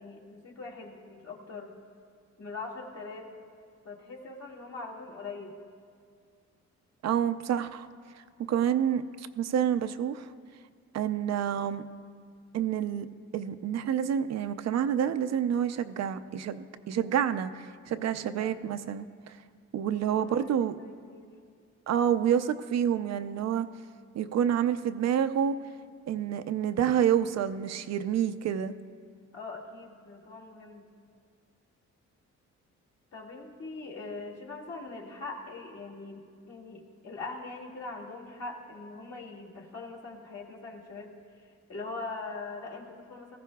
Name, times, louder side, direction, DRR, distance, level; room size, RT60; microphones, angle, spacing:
voice 1, 0.0-1.8 2.4-3.3 3.8-5.6 18.0-18.5 19.8-21.3 29.3-30.9 33.1-43.4, left 3 dB, 55° left, -2 dB, 2.4 m, -42 dB
voice 2, 7.0-7.9 8.5-10.3 10.9-11.8 12.5-13.1 13.3-19.4 19.7-20.8 21.9-23.7 24.1-25.5 26.1-28.7, right 9 dB, 60° right, 10 dB, 0.6 m, -28 dB
18.5 x 15.0 x 2.3 m, 2.2 s
cardioid pair, 90°, 30 cm